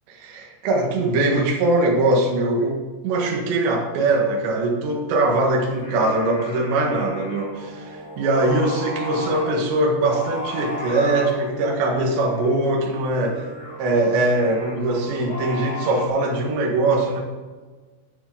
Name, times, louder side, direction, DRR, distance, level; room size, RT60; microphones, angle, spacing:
voice 1, 0.2-13.4 13.8-17.2, right 2 dB, 80° right, 0 dB, 3.9 m, -21 dB
Singing, 5.6-16.1, left 1 dB, 20° left, 2.4 m, -35 dB
16.0 x 7.5 x 4.0 m, 1.4 s
omnidirectional pair, 5.1 m